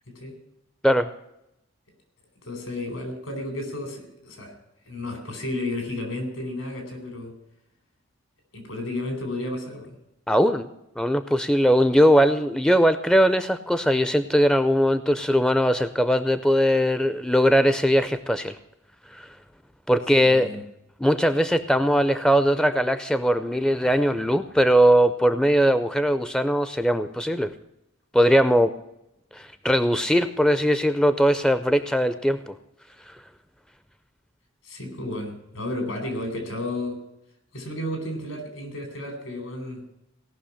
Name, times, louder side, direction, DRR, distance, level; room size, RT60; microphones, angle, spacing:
voice 1, 2.4-4.6 4.9-7.3 8.5-10.0 20.2-20.6 34.6-37.0 37.5-39.8, left 1 dB, 80° left, 4 dB, 4.2 m, -32 dB
voice 2, 10.3-10.7 11.0-18.6 19.1-19.3 19.9-20.5 21.0-27.5 28.1-28.7 29.3-32.5, equal, 5° left, 12 dB, 0.4 m, -20 dB
17.5 x 6.1 x 8.5 m, 0.85 s
head